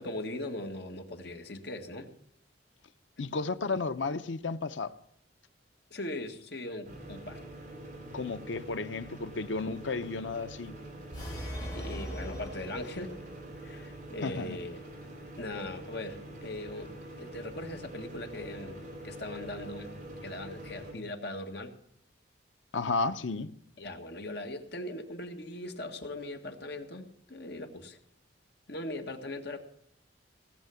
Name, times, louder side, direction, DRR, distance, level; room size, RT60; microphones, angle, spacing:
voice 1, 0.0-2.1 5.9-7.4 11.6-13.1 13.5-14.9 15.4-16.9 17.2-19.9 20.2-21.7 23.8-28.0 28.7-29.6, left 1 dB, 60° left, 1.7 m, -40 dB
voice 2, 3.2-4.9 8.1-10.8 14.2-14.6 22.7-23.5, left 3 dB, 90° left, 0.7 m, -33 dB
sound 1, 6.8-20.9, right 1 dB, 45° right, 5.0 m, -45 dB
sound 2, 11.1-13.4, equal, 20° left, 5.7 m, -40 dB
18.0 x 7.5 x 7.0 m
head